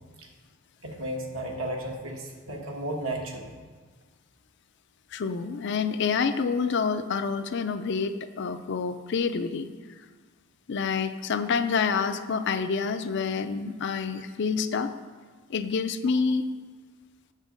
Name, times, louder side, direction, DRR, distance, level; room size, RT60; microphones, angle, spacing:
voice 1, 0.8-3.5, right 1 dB, 80° right, 0 dB, 1.4 m, -34 dB
voice 2, 5.1-9.7 10.7-14.9 15.5-16.4, left 5 dB, 55° left, 10 dB, 0.4 m, -27 dB
8.3 x 6.4 x 5.1 m, 1.4 s
head